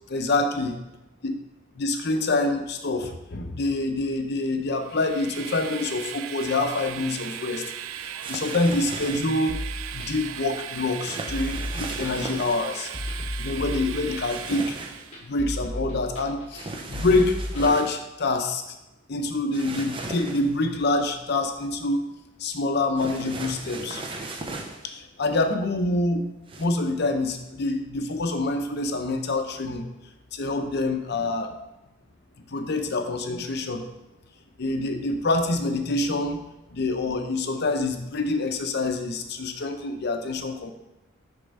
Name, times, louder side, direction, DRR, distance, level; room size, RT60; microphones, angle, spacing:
voice 1, 0.1-0.8 1.2-1.4 1.8-7.7 8.0-9.6 9.9-12.9 13.4-14.8 15.2-18.6 19.1-22.0 22.4-24.0 24.8-26.3 26.6-29.9 30.3-31.5 32.5-33.9 34.6-36.4 36.7-40.7, left 2 dB, 55° left, 6 dB, 0.6 m, -26 dB
Train, 4.8-15.2, right 10 dB, 80° right, 0.4 m, -37 dB
sound 1, 8.2-9.4 11.0-12.6 14.3-15.1 16.5-18.0 19.5-20.6 23.0-24.9 26.5-26.7, right 2 dB, 25° right, 0.6 m, -37 dB
sound 2, 9.5-17.7, left 1 dB, 35° left, 1.6 m, -34 dB
6.7 x 3.4 x 5.3 m, 0.99 s
head